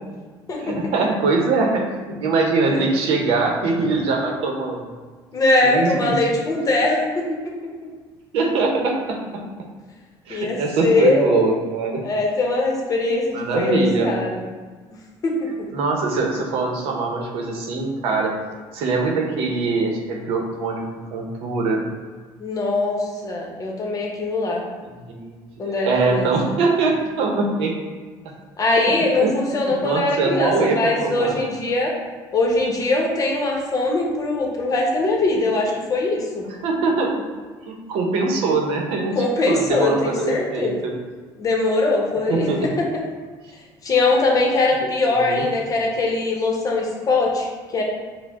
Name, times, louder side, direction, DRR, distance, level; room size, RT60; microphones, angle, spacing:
voice 1, 0.6-4.8 5.6-6.2 8.3-9.4 10.3-12.0 13.3-14.1 15.7-18.3 18.7-20.8 21.1-21.9 25.1-27.8 28.2-28.3 29.2-29.3 29.7-31.4 36.6-37.1 37.6-40.9 42.3-42.7 45.1-45.4, right 3 dB, 75° right, 1 dB, 0.7 m, -22 dB
voice 2, 5.3-7.3 10.3-11.3 12.0-14.5 15.2-15.7 22.4-24.6 25.6-26.3 28.6-31.9 32.3-36.4 39.1-40.8 41.4-42.7 43.8-47.8, left 2 dB, 35° left, -1 dB, 0.9 m, -21 dB
4.9 x 2.1 x 3.6 m, 1.5 s
cardioid pair, 105°, 10 cm